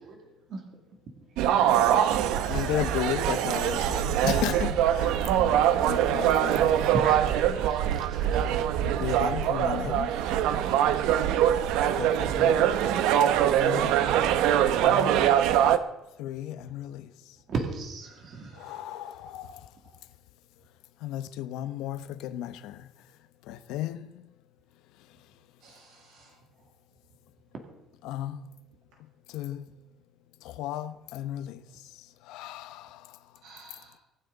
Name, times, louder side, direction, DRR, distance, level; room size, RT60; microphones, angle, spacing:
sound 1, 1.4-15.8, right 10 dB, 85° right, 0.8 m, -23 dB
voice 1, 2.5-6.7 8.8-10.3 10.6-10.9 12.0-12.7 13.6-14.0 14.7-15.3 16.2-17.1 18.5-19.7 21.0-22.9 23.5-24.3 28.0-28.4 29.3-29.7 30.4-33.2, left 12 dB, 90° left, 0.9 m, -35 dB
voice 2, 6.9-8.6 17.5-18.6 19.2-19.4 19.8-20.0, right 4 dB, 40° right, 2.2 m, -35 dB
voice 3, 7.5-7.9 18.1-18.8 25.6-26.4 33.4-34.0, right 2 dB, 70° right, 6.4 m, -52 dB
24.5 x 9.1 x 4.0 m
cardioid pair, 180°, 0 cm